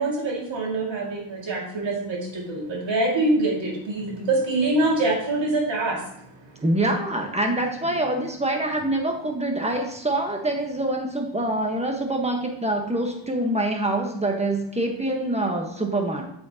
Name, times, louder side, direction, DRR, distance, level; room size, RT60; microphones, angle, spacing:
voice 1, 0.0-6.7 7.8-8.0, right 2 dB, 70° right, -2 dB, 2.4 m, -25 dB
voice 2, 6.6-16.3, right 1 dB, 15° right, 3 dB, 1.3 m, -25 dB
8.5 x 7.5 x 2.9 m, 0.76 s
wide cardioid pair, 115°, 46 cm